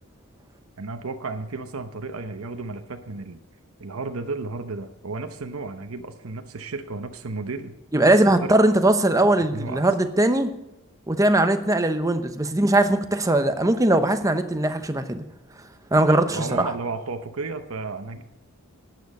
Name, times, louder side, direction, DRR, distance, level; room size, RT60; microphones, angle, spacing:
voice 1, 0.8-3.4 3.8-7.7 8.0-8.1 8.4-8.5 9.5-9.9 16.0-18.2, right 3 dB, 80° right, 7 dB, 0.9 m, -33 dB
voice 2, 7.9-10.5 11.1-15.2 15.9-16.7, right 1 dB, 15° right, 8 dB, 0.8 m, -20 dB
11.5 x 9.5 x 5.4 m, 0.92 s
head